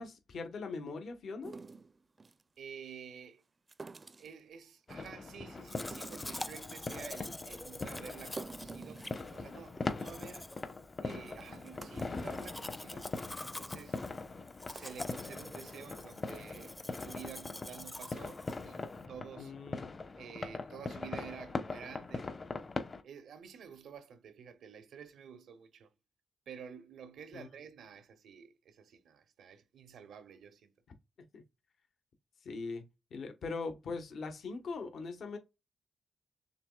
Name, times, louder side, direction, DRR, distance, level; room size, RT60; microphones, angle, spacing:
voice 1, 0.0-1.5 19.4-19.9 27.3-27.5 31.3-31.4 32.4-32.8 33.1-35.4, left 4 dB, 75° left, 1.1 m, -41 dB
sound 1, 1.4-2.4 3.7-4.4 4.9-5.3 5.7-6.7 7.1-7.2 7.5-7.6 8.1-9.7 10.0-10.1 10.3-10.5 11.1-11.2 11.6-12.6 13.1-13.3 13.8-13.9 14.5-15.3, right 3 dB, 40° right, 0.4 m, -49 dB
voice 2, 2.6-3.4 4.2-10.5 11.0-13.1 13.4-14.1 14.7-19.5 20.1-22.3 23.0-25.9 26.5-30.7, right 7 dB, 85° right, 0.7 m, -50 dB
sound 2, 4.9-23.0, left 3 dB, 45° left, 0.9 m, -42 dB
Domestic sounds home sounds, 5.6-19.0, left 1 dB, 15° left, 0.5 m, -47 dB
6.7 x 3.1 x 2.3 m
cardioid pair, 55°, 0 cm